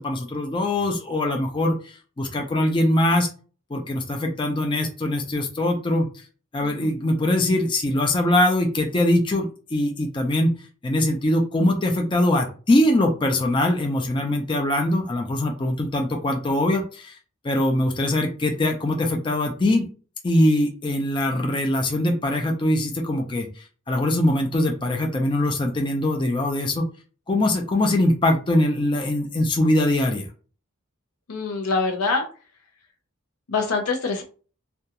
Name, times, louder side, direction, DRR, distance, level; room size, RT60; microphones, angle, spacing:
voice 1, 0.0-3.3 3.7-6.1 6.5-10.5 10.8-17.2 17.4-19.9 20.2-26.9 27.3-30.3, left 1 dB, 20° left, 2 dB, 0.4 m, -22 dB
voice 2, 6.6-7.0 31.3-32.3 33.5-34.2, left 3 dB, 80° left, 2 dB, 0.6 m, -25 dB
2.4 x 2.2 x 2.8 m, 0.37 s
head